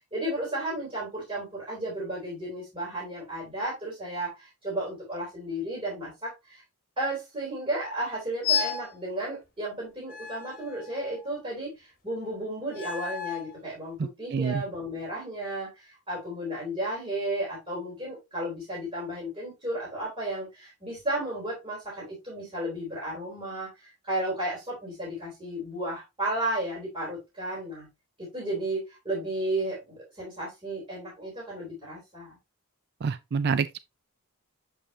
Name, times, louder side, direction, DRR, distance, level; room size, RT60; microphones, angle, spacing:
voice 1, 0.1-6.6 7.0-27.9 28.2-32.4, right 1 dB, 25° right, 3.4 m, -33 dB
sound 1, 8.4-8.9 10.1-11.3 12.7-13.5, left 7 dB, 40° left, 1.4 m, -32 dB
voice 2, 14.3-14.6 33.0-33.8, right 5 dB, 45° right, 0.4 m, -27 dB
7.3 x 5.2 x 2.7 m
head